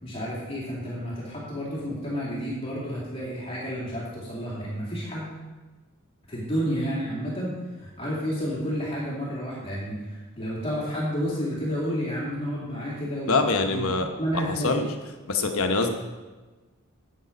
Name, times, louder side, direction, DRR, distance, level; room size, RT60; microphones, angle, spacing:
voice 1, 0.0-5.3 6.3-13.4 13.7-13.9 14.2-14.8, equal, 25° left, -6 dB, 2.6 m, -30 dB
voice 2, 13.3-14.1 14.3-14.9 15.3-15.9, left 3 dB, 75° left, 5 dB, 1.1 m, -24 dB
8.4 x 8.4 x 5.2 m, 1.3 s
head